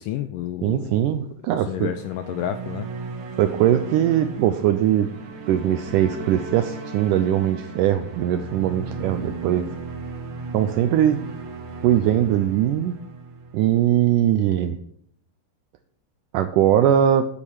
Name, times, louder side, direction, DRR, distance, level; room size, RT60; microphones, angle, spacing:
voice 1, 0.0-1.0 1.7-2.9, left 12 dB, 80° left, 9 dB, 1.9 m, -30 dB
voice 2, 0.6-1.9 3.3-5.1 5.5-9.7 10.5-11.2 11.8-13.0 13.5-14.8 16.3-17.3, right 11 dB, 85° right, 9 dB, 1.8 m, -20 dB
sound 1, 1.7-14.2, right 4 dB, 70° right, 1.1 m, -36 dB
10.5 x 8.6 x 4.8 m, 0.66 s
omnidirectional pair, 4.3 m